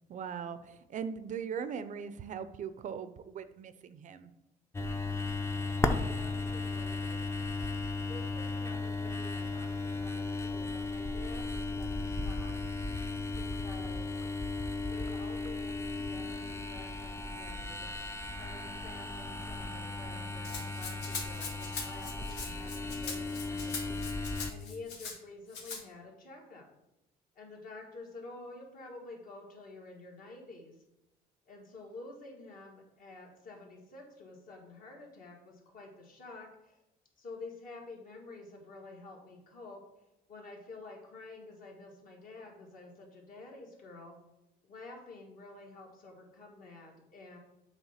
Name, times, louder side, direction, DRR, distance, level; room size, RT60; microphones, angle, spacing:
voice 1, 0.1-4.3, right 7 dB, 50° right, 12 dB, 0.5 m, -40 dB
sound 1, 4.7-24.5, left 3 dB, 15° left, 0.6 m, -36 dB
voice 2, 6.0-7.4 8.1-12.5 13.4-14.3 14.8-17.9 18.3-23.8 24.5-26.6 27.4-30.8 31.5-36.8 37.2-39.8 40.3-44.2 44.6-47.4, left 3 dB, 55° left, 0 dB, 2.0 m, -50 dB
Rattle (instrument), 20.4-25.2 25.5-25.8, left 5 dB, 85° left, 1.6 m, -41 dB
7.1 x 3.3 x 5.7 m, 0.90 s
cardioid pair, 110°, 17 cm